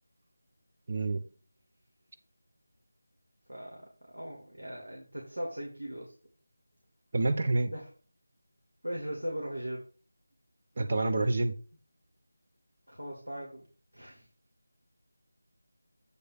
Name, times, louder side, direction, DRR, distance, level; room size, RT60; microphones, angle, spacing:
voice 1, 0.9-1.2 7.1-7.7 10.8-11.5, right 2 dB, 40° right, 6 dB, 1.0 m, -27 dB
voice 2, 3.5-6.1 7.7-7.9 8.8-9.8 12.9-13.7 13.9-14.3, equal, 85° right, -2 dB, 2.4 m, -39 dB
8.5 x 3.3 x 6.4 m, 0.37 s
figure-of-eight pair, 165°, 0 cm